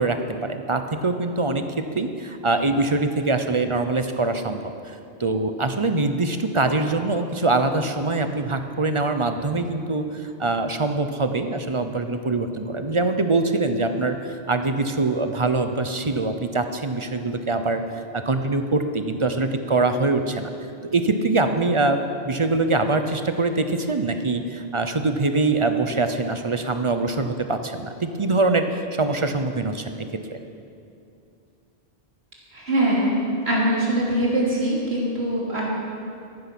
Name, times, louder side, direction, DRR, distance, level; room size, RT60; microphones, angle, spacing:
voice 1, 0.0-17.8 18.1-20.5 20.9-22.0 22.2-30.0 30.3-30.4, right 3 dB, 35° right, 7 dB, 0.7 m, -23 dB
voice 2, 32.5-33.2 33.4-35.6, right 1 dB, 75° right, -5 dB, 3.5 m, -22 dB
14.5 x 11.0 x 6.0 m, 2.5 s
omnidirectional pair, 1.1 m